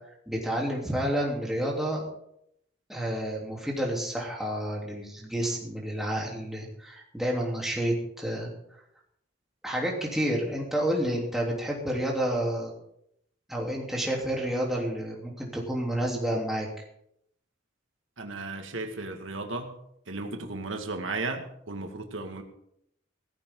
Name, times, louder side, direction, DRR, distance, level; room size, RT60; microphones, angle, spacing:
voice 1, 0.3-2.0 2.9-8.5 9.6-12.7 13.5-16.7, right 1 dB, ahead, -3 dB, 3.3 m, -29 dB
voice 2, 18.2-19.8 20.1-22.4, right 3 dB, 85° right, 4 dB, 2.0 m, -35 dB
17.0 x 14.5 x 3.9 m, 0.74 s
head